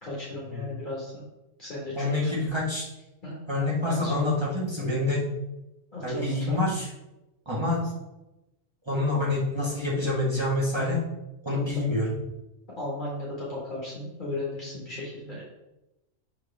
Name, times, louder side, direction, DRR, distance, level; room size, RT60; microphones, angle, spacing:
voice 1, 0.0-1.2 1.6-2.1 3.2-3.4 3.8-4.2 5.9-6.6 11.5-11.6 12.8-15.4, left 1 dB, 40° left, -6 dB, 1.8 m, -35 dB
voice 2, 1.9-2.8 3.5-5.2 6.0-6.9 7.4-7.9 8.8-11.0 11.4-12.1, left 2 dB, 20° right, -6 dB, 1.7 m, -27 dB
6.1 x 4.7 x 3.5 m, 0.94 s
omnidirectional pair, 1.3 m